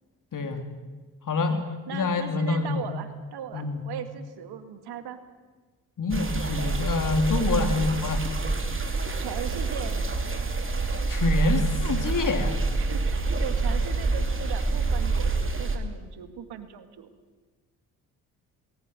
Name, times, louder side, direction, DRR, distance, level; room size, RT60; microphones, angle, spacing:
voice 1, 0.3-0.7 1.3-1.6 1.9-2.8 3.5-3.8 6.0-8.2 11.1-12.6, left 3 dB, 50° left, 6 dB, 3.4 m, -26 dB
voice 2, 1.5-5.2 7.5-7.8 9.2-10.0 12.8-17.1, right 9 dB, 65° right, 9 dB, 2.1 m, -38 dB
sound 1, 6.1-15.8, right 3 dB, 30° right, 3.1 m, -27 dB
20.0 x 17.5 x 9.1 m, 1.4 s
hypercardioid pair, 50°, 41 cm